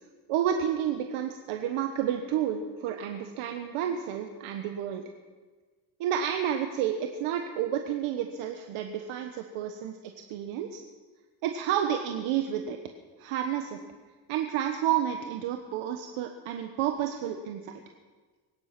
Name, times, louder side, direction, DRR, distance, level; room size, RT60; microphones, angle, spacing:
voice 1, 0.3-5.0 6.0-10.8 11.4-12.8 13.2-13.8 14.3-17.8, right 9 dB, 90° right, 5 dB, 1.3 m, -30 dB
22.5 x 10.0 x 6.0 m, 1.4 s
cardioid pair, 100°, 49 cm